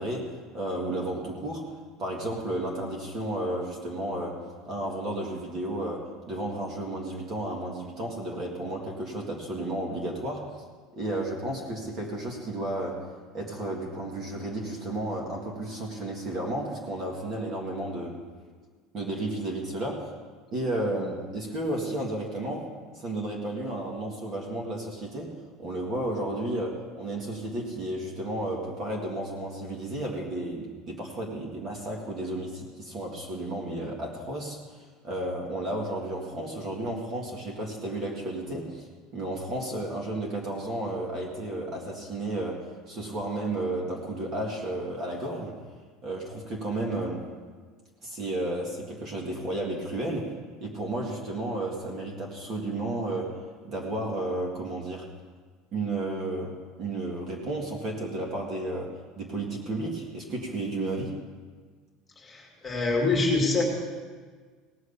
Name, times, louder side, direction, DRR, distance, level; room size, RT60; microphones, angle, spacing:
voice 1, 0.0-1.7 2.0-10.5 10.9-13.1 13.3-18.2 18.9-20.1 20.5-22.7 23.0-34.6 35.0-38.9 39.1-45.6 46.0-47.3 48.0-50.3 50.6-53.4 53.6-55.1 55.7-61.1, right 1 dB, 30° right, -1 dB, 1.9 m, -32 dB
voice 2, 62.3-63.6, left 3 dB, 10° left, -1 dB, 2.5 m, -25 dB
18.0 x 6.4 x 6.8 m, 1.5 s
cardioid pair, 170°, 0 cm